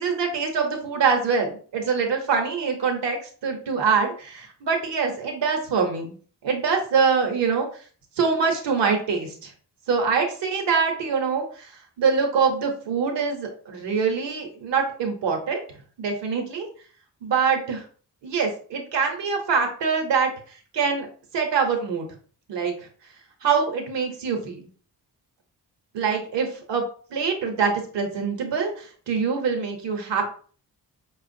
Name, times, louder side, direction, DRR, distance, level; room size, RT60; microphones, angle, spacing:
voice 1, 0.0-6.1 6.4-7.7 8.2-9.5 9.9-11.7 12.0-15.6 16.0-16.7 17.2-17.8 18.2-20.3 20.7-21.1 21.3-22.1 22.5-22.7 23.4-24.6 25.9-26.8 27.1-30.3, right 5 dB, 80° right, 3 dB, 0.9 m, -24 dB
4.9 x 2.4 x 2.6 m, 0.43 s
supercardioid pair, 45°, 43 cm